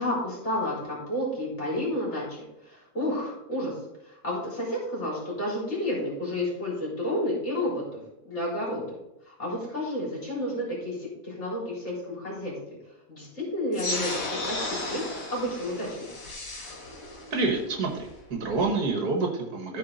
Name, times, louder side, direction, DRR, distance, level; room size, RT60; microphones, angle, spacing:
voice 1, 0.0-3.7 4.0-7.8 8.2-8.8 9.3-12.6 13.1-15.0 15.3-16.0, left 1 dB, 40° left, -5 dB, 4.0 m, -31 dB
sound 1, 13.7-18.7, left 2 dB, 60° left, 2.1 m, -35 dB
voice 2, 17.3-19.8, right 3 dB, 65° right, 3 dB, 1.6 m, -28 dB
14.0 x 4.8 x 3.9 m, 0.86 s
omnidirectional pair, 1.9 m